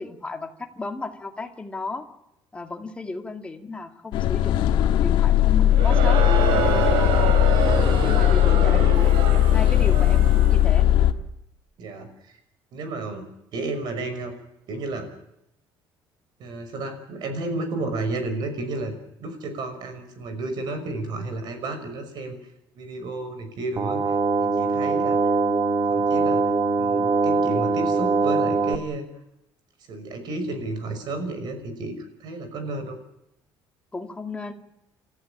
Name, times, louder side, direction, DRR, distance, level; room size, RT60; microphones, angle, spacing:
voice 1, 0.0-2.0 2.5-4.6 5.0-6.2 8.0-9.2 9.5-10.9 33.9-34.5, left 3 dB, 15° left, 5 dB, 2.1 m, -34 dB
sound 1, 4.1-11.1, left 12 dB, 65° left, 1.7 m, -18 dB
Crowd, 5.7-10.7, right 7 dB, 80° right, 4.1 m, -27 dB
voice 2, 8.5-8.9 11.8-12.4 12.7-13.2 13.5-14.3 14.7-15.1 16.4-22.4 22.7-25.3 25.9-26.4 26.8-29.1 29.9-33.0, right 2 dB, 55° right, 8 dB, 5.7 m, -32 dB
sound 2, 23.8-28.8, right 4 dB, 30° right, 1.5 m, -22 dB
29.5 x 14.0 x 8.8 m, 0.84 s
cardioid pair, 160°, 9 cm